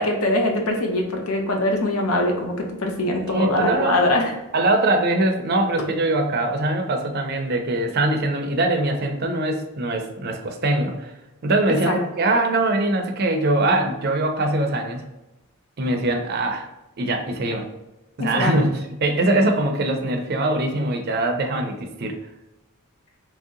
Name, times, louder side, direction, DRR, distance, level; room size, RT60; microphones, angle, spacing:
voice 1, 0.0-4.3 11.8-12.0 18.2-18.6, left 1 dB, 80° left, 2 dB, 0.7 m, -22 dB
voice 2, 3.3-4.0 4.5-11.1 11.4-15.0 15.8-16.7 17.0-17.7 18.2-22.2, right 2 dB, 45° right, 4 dB, 0.4 m, -22 dB
3.1 x 2.7 x 3.6 m, 0.99 s
head